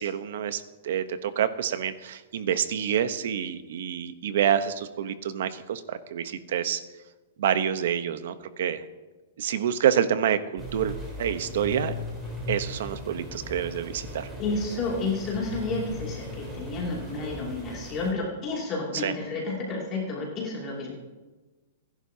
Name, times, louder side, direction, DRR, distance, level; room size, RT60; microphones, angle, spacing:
voice 1, 0.0-6.8 7.4-8.8 9.4-11.9 12.5-14.3 19.0-19.1, right 9 dB, 60° right, 11 dB, 0.9 m, -27 dB
sound 1, 10.6-18.1, left 2 dB, 10° right, 3.6 m, -38 dB
voice 2, 14.4-20.9, left 3 dB, 20° left, -3 dB, 2.6 m, -31 dB
30.0 x 11.0 x 2.8 m, 1.2 s
hypercardioid pair, 170°, 0 cm